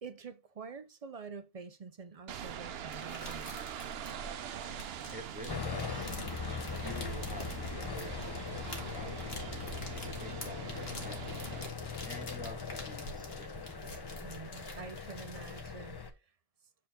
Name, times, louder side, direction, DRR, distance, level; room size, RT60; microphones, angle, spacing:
voice 1, 0.0-3.6 14.2-16.3, right 5 dB, 45° right, 0.5 m, -47 dB
sound 1, 2.3-11.7, right 9 dB, 75° right, 0.9 m, -44 dB
sound 2, 2.5-16.1, left 1 dB, 75° left, 1.8 m, -47 dB
voice 2, 5.1-6.2 6.8-11.4 12.1-13.5, right 1 dB, 10° right, 1.4 m, -48 dB
sound 3, 5.5-16.1, left 5 dB, 30° left, 0.5 m, -41 dB
7.4 x 4.5 x 3.5 m
omnidirectional pair, 1.0 m